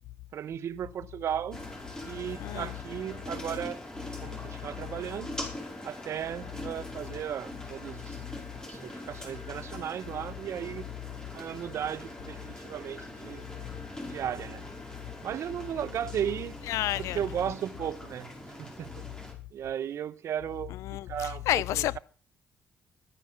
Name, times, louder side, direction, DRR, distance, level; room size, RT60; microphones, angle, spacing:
voice 1, 0.3-1.6 2.0-3.8 4.2-5.4 5.8-8.2 8.7-10.9 11.3-13.4 14.1-14.7 15.2-16.5 17.0-18.3 18.6-19.0 19.5-20.7 21.1-22.0, right 9 dB, 65° right, 1.0 m, -35 dB
sound 1, 1.5-19.3, left 1 dB, 15° left, 5.2 m, -43 dB
voice 2, 2.4-2.7 13.7-13.8 16.7-17.2 20.7-22.0, left 14 dB, 85° left, 0.5 m, -30 dB
14.0 x 9.8 x 5.9 m
cardioid pair, 75°, 5 cm